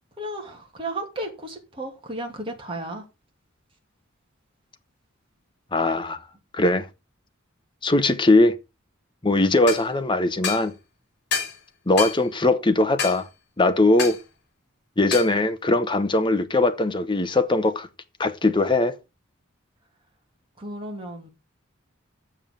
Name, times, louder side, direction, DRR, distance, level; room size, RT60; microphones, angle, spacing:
voice 1, 0.2-3.0 20.6-21.3, right 1 dB, 25° right, 2.7 m, -34 dB
voice 2, 5.7-6.2 6.5-6.9 7.8-8.6 9.2-10.7 11.9-13.3 13.6-14.2 15.0-17.9 18.2-18.9, left 2 dB, 25° left, 1.0 m, -20 dB
sound 1, 9.7-9.8 10.4-10.7 11.3-11.6 12.0-12.2 13.0-13.2 14.0-14.2 15.1-15.3, left 6 dB, 55° left, 3.3 m, -27 dB
7.4 x 7.3 x 6.8 m
head